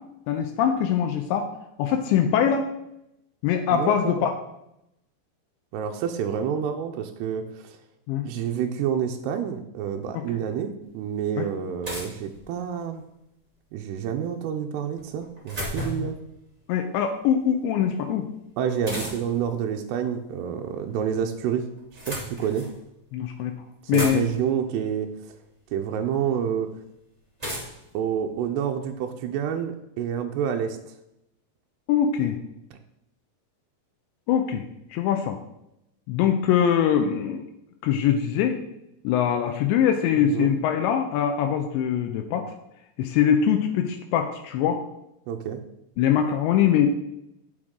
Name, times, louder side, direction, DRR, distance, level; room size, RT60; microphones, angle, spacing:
voice 1, 0.3-1.5 1.8-2.7 3.4-4.3 8.1-8.3 10.1-10.2 11.4-11.5 16.7-18.3 23.1-23.6 23.9-24.2 31.9-32.4 34.3-34.6 34.9-35.4 36.1-37.4 37.8-38.6 39.0-42.5 43.0-44.8 46.0-46.9, left 9 dB, 85° left, 5 dB, 2.8 m, -23 dB
voice 2, 3.7-4.3 5.7-7.8 8.2-13.0 13.7-16.2 18.6-21.7 22.1-22.7 23.8-25.4 25.7-26.7 27.9-31.0 40.2-40.5 45.3-45.6, right 8 dB, 80° right, 4 dB, 2.5 m, -28 dB
sound 1, 10.8-10.9 11.8-12.9 15.0-16.2 18.8-19.4 20.6-21.2 21.8-22.8 23.4-23.5 23.7-24.6 25.7-25.8 27.4-28.9, equal, 60° right, 0.4 m, -35 dB
10.0 x 6.3 x 3.7 m, 0.83 s
omnidirectional pair, 5.3 m